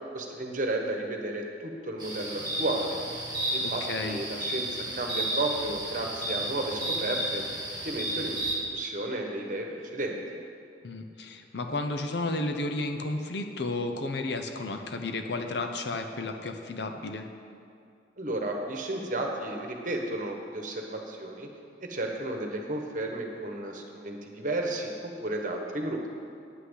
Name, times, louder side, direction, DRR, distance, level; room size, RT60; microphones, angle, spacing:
voice 1, 0.1-3.0 3.5-7.4 7.8-10.2 18.2-21.5 21.8-26.0, right 2 dB, 45° right, 2 dB, 1.2 m, -33 dB
sound 1, 2.0-8.5, right 1 dB, 25° right, 1.8 m, -32 dB
voice 2, 3.6-4.2 10.8-17.3, left 2 dB, 65° left, 5 dB, 0.8 m, -32 dB
9.8 x 5.8 x 8.1 m, 2.4 s
head